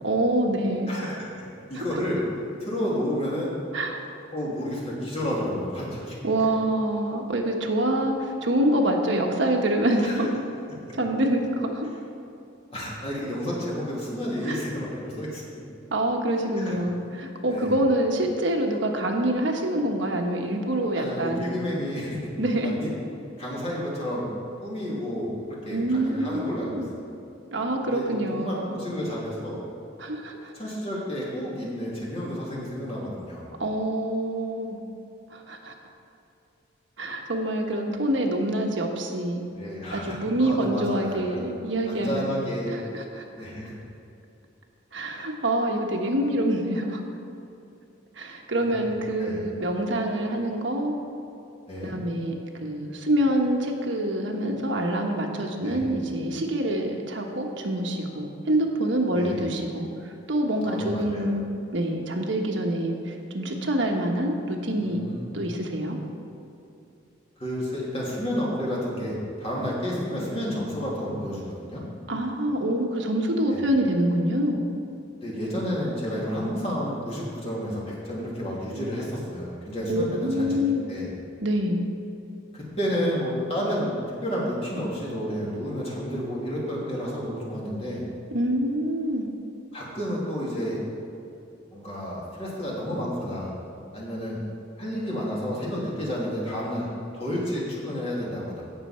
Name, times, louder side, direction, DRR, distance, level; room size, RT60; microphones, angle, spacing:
voice 1, 0.0-0.9 1.7-1.8 3.7-4.0 6.2-10.3 10.9-11.9 14.4-14.6 15.9-21.6 22.4-22.7 25.7-26.9 27.5-28.8 30.0-30.5 33.6-34.8 35.3-35.7 37.0-39.4 39.9-42.3 42.7-43.2 44.9-47.0 48.2-50.9 51.8-61.4 61.7-65.0 65.3-66.0 72.1-74.6 79.9-80.9 81.4-81.8 88.3-89.3, right 1 dB, 70° right, 2 dB, 1.3 m, -26 dB
voice 2, 0.9-1.3 1.7-2.2 2.6-3.5 4.3-6.2 10.0-10.2 12.7-15.4 16.6-16.7 17.4-17.8 20.9-22.3 22.6-22.9 23.4-24.3 24.6-25.3 25.6-27.0 27.9-28.0 28.3-29.6 30.5-33.5 39.6-41.4 41.8-42.7 43.4-43.7 48.5-48.8 49.2-49.4 51.7-51.9 55.6-55.8 59.1-59.4 60.6-61.3 64.8-65.3 67.4-71.8 73.5-73.6 75.2-80.6 80.9-81.1 82.5-83.9 84.2-88.0 89.7-90.8 91.7-93.5 93.9-94.4 94.8-96.9 97.1-98.6, equal, 30° left, -5 dB, 2.8 m, -31 dB
16.5 x 6.8 x 4.4 m, 2.7 s
head